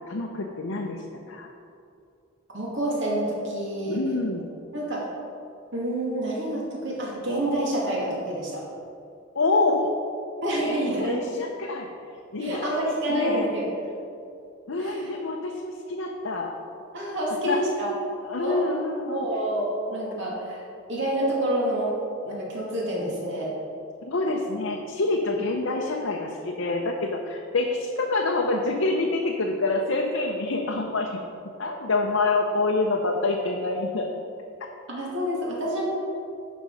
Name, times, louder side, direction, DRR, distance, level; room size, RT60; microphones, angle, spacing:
voice 1, 0.1-1.5 3.9-4.5 9.4-9.9 10.6-11.9 12.3-13.5 14.7-16.5 17.4-17.6 18.2-19.2 24.1-31.2 31.6-34.1, left 3 dB, 75° left, 0 dB, 0.7 m, -27 dB
voice 2, 2.5-4.0 4.7-5.0 5.7-8.6 10.4-11.2 12.4-13.6 14.8-15.1 16.9-17.9 18.4-18.8 19.1-20.6 20.9-21.9 22.2-23.5 34.9-35.8, right 1 dB, 65° right, -4 dB, 2.4 m, -28 dB
10.5 x 5.2 x 4.9 m, 2.5 s
head